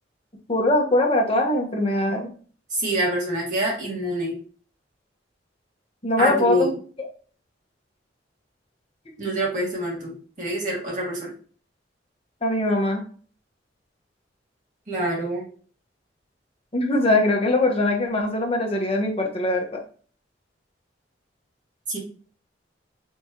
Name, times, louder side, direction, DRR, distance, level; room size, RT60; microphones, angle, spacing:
voice 1, 0.5-2.3 6.0-6.7 12.4-13.0 16.7-19.8, left 2 dB, 30° left, 1 dB, 1.0 m, -22 dB
voice 2, 2.7-4.3 6.2-6.7 9.2-11.3 14.9-15.5 21.9-22.0, right 1 dB, 45° right, -4 dB, 2.1 m, -26 dB
4.6 x 3.3 x 2.8 m, 0.42 s
head